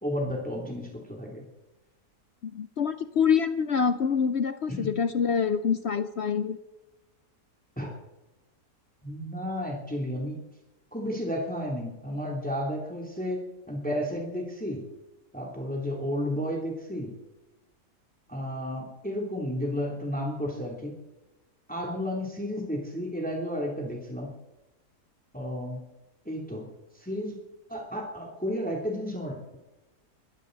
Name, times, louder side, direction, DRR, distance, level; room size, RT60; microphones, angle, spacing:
voice 1, 0.0-1.5 4.7-4.9 7.8-7.9 9.0-10.4 10.9-13.4 13.7-14.8 15.3-17.1 18.3-21.0 21.7-24.3 25.3-25.8 26.2-26.7 26.9-27.4 27.7-29.6, equal, 5° left, -1 dB, 2.9 m, -32 dB
voice 2, 2.4-6.6, left 6 dB, 60° left, 11 dB, 0.7 m, -26 dB
22.0 x 15.0 x 4.0 m, 1.0 s
omnidirectional pair, 1.7 m